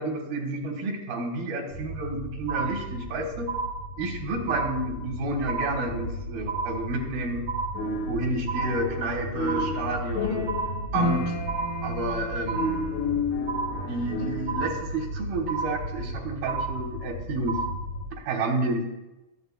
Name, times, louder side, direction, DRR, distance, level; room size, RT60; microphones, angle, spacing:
voice 1, 0.0-3.6 4.0-7.5 8.1-10.5 10.9-11.3 11.8-12.8 13.9-17.6 18.2-18.9, right 2 dB, 85° right, 2 dB, 3.2 m, -30 dB
sound 1, 1.7-18.1, right 1 dB, 90° left, 6.2 m, -36 dB
sound 2, 2.5-3.1 3.5-4.1 4.5-5.1 5.5-6.1 6.5-7.1 7.5-8.1 8.5-9.1 9.5-10.1 10.5-11.1 11.5-12.1 12.5-13.1 13.5-14.1 14.5-15.1 15.5-16.1 16.5-17.1 17.5-17.8, right 4 dB, 45° right, 1.2 m, -32 dB
sound 3, 7.7-9.1 9.3-14.6, left 2 dB, 70° left, 1.7 m, -31 dB
22.5 x 7.6 x 2.3 m, 1.0 s
omnidirectional pair, 4.2 m